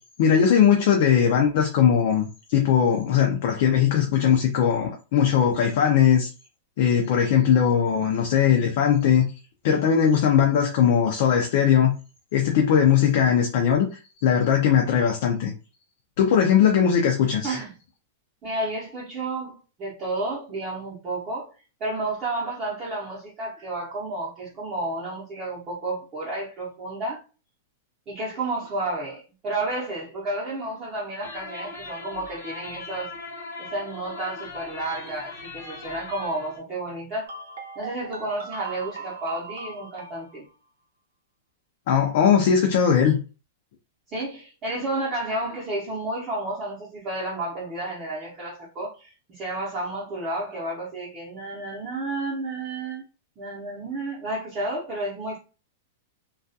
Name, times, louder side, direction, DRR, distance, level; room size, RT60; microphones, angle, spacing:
voice 1, 0.2-6.3 6.8-9.3 9.6-11.9 12.3-15.5 16.2-17.6 41.9-43.2, left 8 dB, 45° left, 0.4 m, -20 dB
voice 2, 18.4-21.5 21.8-27.2 28.1-33.1 33.6-37.3 37.8-40.5 44.1-53.0 53.4-55.4, right 2 dB, 20° right, 0.8 m, -31 dB
sound 1, 31.2-36.6, left 3 dB, 90° left, 0.9 m, -39 dB
sound 2, 37.3-40.5, right 4 dB, 85° right, 0.7 m, -39 dB
2.3 x 2.3 x 2.6 m
supercardioid pair, 170°, 0 cm